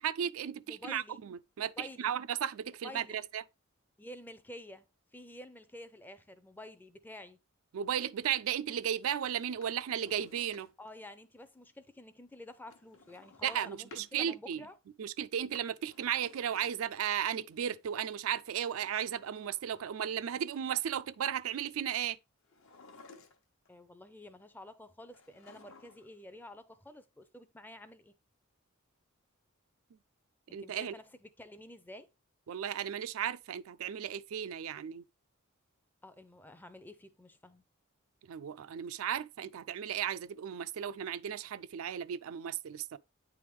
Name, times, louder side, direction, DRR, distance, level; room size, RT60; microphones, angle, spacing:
voice 1, 0.0-3.4 7.7-10.7 13.4-14.6 15.0-22.2 30.5-30.9 32.5-35.0 38.2-43.0, right 9 dB, 75° right, 0.4 m, -35 dB
voice 2, 0.7-1.2 1.6-2.1 2.8-3.2 4.0-4.9 5.1-7.4 10.8-14.8 23.7-28.2 30.5-32.1 36.0-37.6, left 1 dB, 10° left, 0.5 m, -50 dB
Drawer open or close, 9.4-11.0 12.7-14.1 15.3-17.1 18.3-20.0 22.4-23.7 25.1-26.2 26.5-26.6, left 4 dB, 65° left, 1.0 m, -58 dB
9.2 x 3.5 x 3.1 m
head